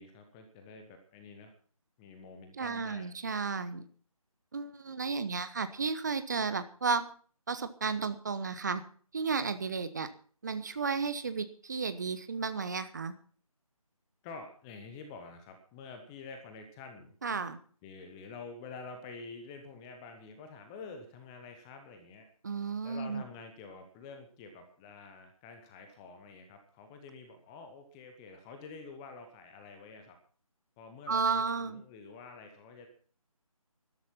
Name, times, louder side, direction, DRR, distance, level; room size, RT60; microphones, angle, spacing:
voice 1, 0.0-1.5 2.0-3.1 14.2-17.2 17.8-22.3 22.8-30.2 30.8-32.9, left 4 dB, 5° left, 6 dB, 0.8 m, -48 dB
voice 2, 2.6-3.9 4.5-7.0 7.5-8.8 9.1-10.1 10.4-13.1 17.2-17.6 22.4-23.2 31.1-31.8, right 5 dB, 30° right, 12 dB, 1.0 m, -33 dB
13.5 x 12.0 x 5.8 m, 0.44 s
figure-of-eight pair, 155°, 19 cm